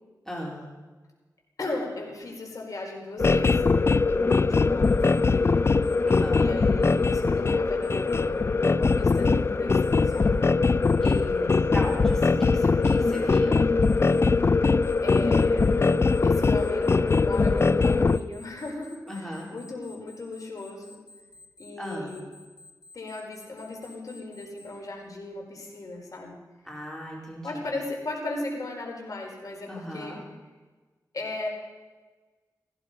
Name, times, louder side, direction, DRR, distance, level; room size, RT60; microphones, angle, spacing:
voice 1, 0.3-0.7 6.0-6.5 11.0-11.1 11.7-13.6 19.1-19.5 21.8-22.2 26.6-27.7 29.7-30.2, equal, 5° left, -3 dB, 4.3 m, -37 dB
voice 2, 1.6-5.7 6.0-6.1 6.3-8.4 8.8-10.5 11.0-11.7 15.0-15.8 16.2-21.0 21.6-22.3 22.9-26.4 27.4-30.2 31.1-31.5, left 2 dB, 60° left, 1 dB, 4.6 m, -37 dB
sound 1, 3.2-18.2, left 4 dB, 40° left, 0.5 m, -22 dB
Alarm, 4.8-5.2 5.8-6.2 6.8-7.2 7.8-8.2 8.8-9.2 9.8-10.2 10.8-11.2 11.8-12.2 12.8-13.2 13.8-14.2 14.8-24.7, left 2 dB, 85° left, 1.8 m, -51 dB
17.5 x 15.0 x 5.3 m, 1.3 s
cardioid pair, 70°, 7 cm